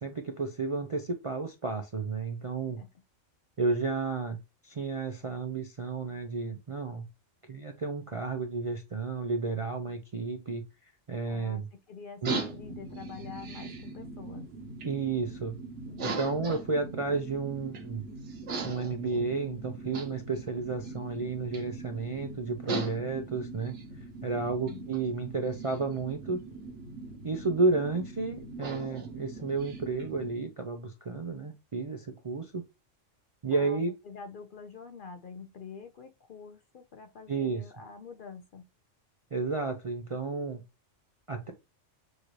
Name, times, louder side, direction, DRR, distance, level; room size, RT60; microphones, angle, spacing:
voice 1, 0.0-2.8 3.6-4.4 4.6-7.1 7.5-10.6 11.1-11.6 12.2-12.4 14.8-15.6 16.0-18.0 18.6-23.8 24.2-26.4 27.2-32.6 33.4-33.9 37.3-37.6 39.3-40.6 41.3-41.5, right 4 dB, 45° right, 0.4 m, -32 dB
voice 2, 11.3-14.5 15.9-16.3 24.3-24.9 33.5-38.6, left 5 dB, 60° left, 0.6 m, -46 dB
sound 1, 12.2-30.3, right 3 dB, 65° right, 1.3 m, -40 dB
6.4 x 2.6 x 3.1 m
omnidirectional pair, 1.3 m